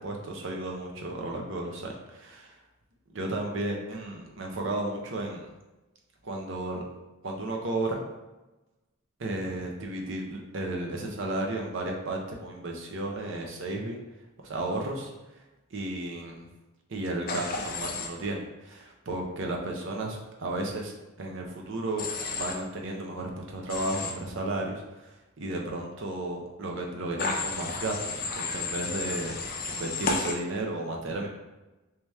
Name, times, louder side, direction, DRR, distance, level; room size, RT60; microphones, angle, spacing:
voice 1, 0.0-2.3 3.1-5.5 6.2-6.8 7.2-8.0 9.2-14.0 14.4-15.4 15.7-16.5 16.9-22.1 22.3-29.4 29.7-31.3, right 2 dB, 60° right, 1 dB, 0.6 m, -33 dB
Human voice / Train, 17.3-18.1 22.0-22.5 23.7-24.1 27.2-30.3, left 3 dB, 40° left, 0.4 m, -32 dB
3.2 x 2.9 x 3.4 m, 1.1 s
head